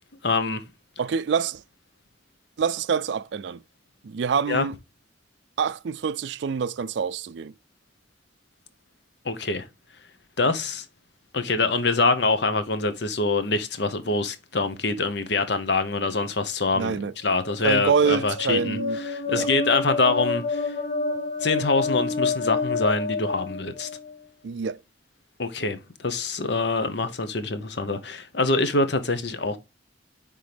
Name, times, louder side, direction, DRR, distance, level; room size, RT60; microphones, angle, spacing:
voice 1, 0.2-0.6 4.5-4.6 9.2-9.7 10.4-10.8 11.3-17.0 17.2-18.8 19.0-20.8 21.4-23.9 25.4-29.6, left 3 dB, 60° left, 0.9 m, -25 dB
voice 2, 1.0-1.6 2.6-3.6 4.0-4.8 5.6-7.5 16.7-17.1 17.6-19.0 19.3-19.5 24.4-24.8, right 6 dB, 65° right, 0.4 m, -26 dB
sound 1, 17.4-24.2, left 4 dB, 40° left, 1.1 m, -28 dB
10.0 x 3.7 x 3.4 m
head